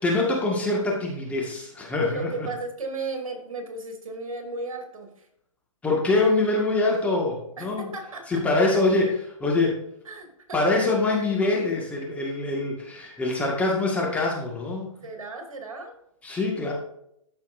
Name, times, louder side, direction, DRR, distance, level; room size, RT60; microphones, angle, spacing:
voice 1, 0.0-2.5 5.8-7.9 8.3-9.8 10.5-14.9 16.2-16.7, left 2 dB, 10° left, -2 dB, 1.8 m, -24 dB
voice 2, 2.1-5.3 7.6-8.4 10.0-10.8 15.0-15.9, right 3 dB, 80° right, 3 dB, 2.6 m, -35 dB
14.0 x 5.6 x 2.6 m, 0.75 s
hypercardioid pair, 145°, 17 cm